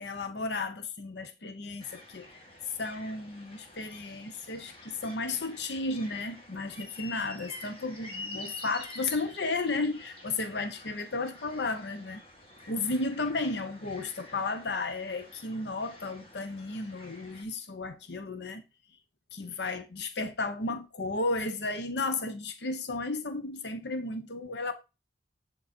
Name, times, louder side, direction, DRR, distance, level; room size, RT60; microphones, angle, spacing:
voice 1, 0.0-2.4 2.6-12.2 12.7-18.6 19.3-24.7, left 3 dB, 80° left, 0.9 m, -33 dB
sound 1, 1.8-17.4, left 2 dB, 30° left, 2.1 m, -48 dB
11.0 x 3.9 x 4.4 m
head